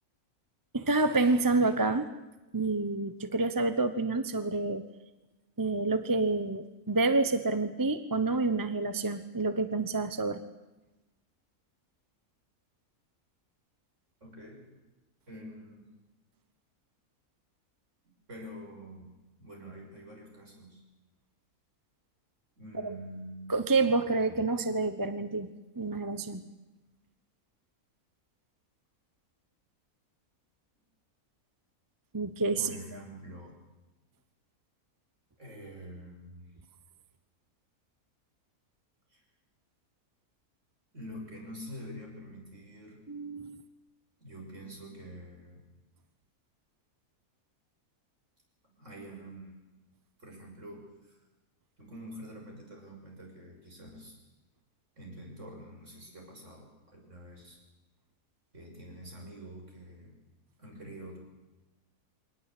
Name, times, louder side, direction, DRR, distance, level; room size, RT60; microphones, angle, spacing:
voice 1, 0.7-2.1 2.5-4.8 5.6-10.4 22.8-22.9 23.5-25.5 25.8-26.4 32.1-32.7 43.1-43.6, right 3 dB, 15° right, 10 dB, 0.8 m, -28 dB
voice 2, 14.2-14.6 15.3-15.9 18.3-19.1 19.4-20.8 22.6-23.5 32.6-33.6 35.4-36.5 39.1-39.2 40.9-43.0 44.2-45.7 48.8-49.5 50.2-51.2 51.8-54.1 55.0-57.6 58.5-60.1 60.6-61.2, equal, 50° right, 0 dB, 6.8 m, -46 dB
23.5 x 18.5 x 8.5 m, 1.1 s
omnidirectional pair, 1.6 m